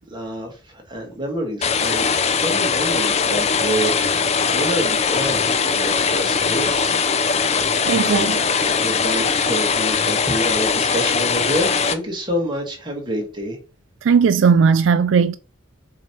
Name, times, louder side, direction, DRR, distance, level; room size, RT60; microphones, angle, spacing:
voice 1, 0.1-2.1 2.4-7.0 8.0-8.4 8.8-13.6, equal, 25° right, 1.6 m, -28 dB
sound 1, 1.6-11.9, left 5 dB, 35° left, 0.5 m, -20 dB
voice 2, 7.9-8.4 14.0-15.4, right 6 dB, 70° right, 0.3 m, -16 dB
7.1 x 2.9 x 4.5 m
head